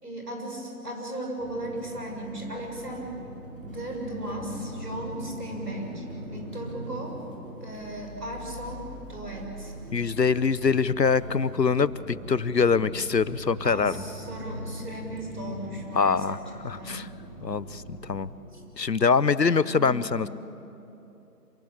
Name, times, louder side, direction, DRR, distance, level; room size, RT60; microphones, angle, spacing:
voice 1, 0.0-3.2 3.6-6.0 6.3-7.2 7.6-9.7 13.6-16.9 18.5-18.6 19.7-20.1, right 1 dB, 70° right, 0 dB, 6.8 m, -36 dB
sound 1, 1.4-18.7, equal, 30° right, 3.7 m, -41 dB
voice 2, 9.9-13.9 16.0-16.4 16.6-17.1 17.4-18.3 18.8-20.3, left 5 dB, 85° left, 18 dB, 0.8 m, -24 dB
27.0 x 15.5 x 8.8 m, 2.9 s
figure-of-eight pair, 165°, 49 cm